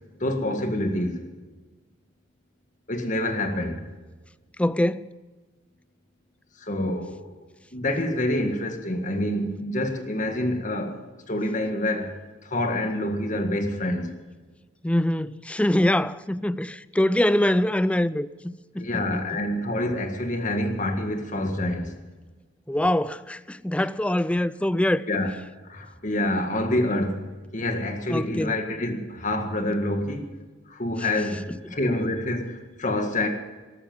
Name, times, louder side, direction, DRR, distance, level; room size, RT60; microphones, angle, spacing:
voice 1, 0.2-1.3 2.9-3.8 6.6-7.3 7.7-12.2 12.4-14.2 18.8-22.0 25.1-25.3 25.6-27.3 27.5-30.3 30.7-33.3, left 1 dB, 40° left, 1.9 m, -27 dB
voice 2, 4.6-5.1 14.8-19.4 22.7-25.1 28.1-28.6 31.5-31.6, left 1 dB, 5° left, 0.4 m, -24 dB
13.5 x 13.0 x 7.3 m
head